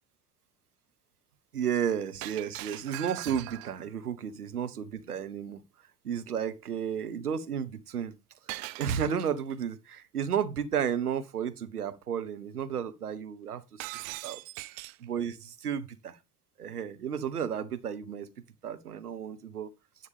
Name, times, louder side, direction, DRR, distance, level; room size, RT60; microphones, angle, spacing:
voice 1, 1.5-5.6 6.0-8.1 8.8-13.8 14.2-14.4 15.0-16.2 16.6-18.3 18.6-19.7, right 8 dB, 85° right, 0.9 m, -32 dB
Shatter, 2.2-3.9 8.5-9.5 13.8-15.1, right 21 dB, 65° right, 0.5 m, -41 dB
9.9 x 8.0 x 3.4 m
figure-of-eight pair, 60°, 44 cm